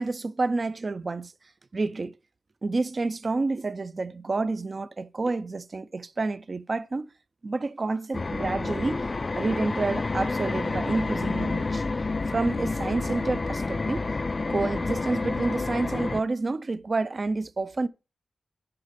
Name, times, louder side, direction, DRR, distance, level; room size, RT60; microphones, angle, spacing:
voice 1, 0.0-1.3 1.7-2.1 2.6-7.1 7.4-9.1 9.4-11.8 12.3-14.1 14.5-17.9, right 3 dB, 50° right, 0.5 m, -29 dB
sound 1, 8.1-16.2, left 3 dB, 45° left, 0.4 m, -29 dB
10.5 x 4.7 x 5.1 m
cardioid pair, 60°, 0 cm